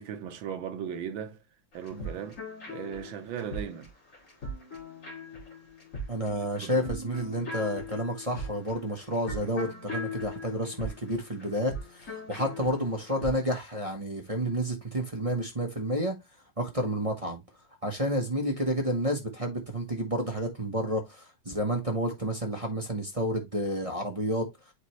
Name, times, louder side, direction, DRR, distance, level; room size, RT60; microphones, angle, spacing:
voice 1, 0.0-1.4 1.7-2.4 2.7-3.9 6.3-6.9, right 8 dB, 75° right, 1.7 m, -37 dB
sound 1, 1.7-13.4, left 1 dB, 40° left, 2.5 m, -40 dB
voice 2, 6.1-16.2 16.6-17.4 17.8-24.5, equal, 25° right, 0.9 m, -30 dB
8.1 x 4.2 x 3.1 m
omnidirectional pair, 2.2 m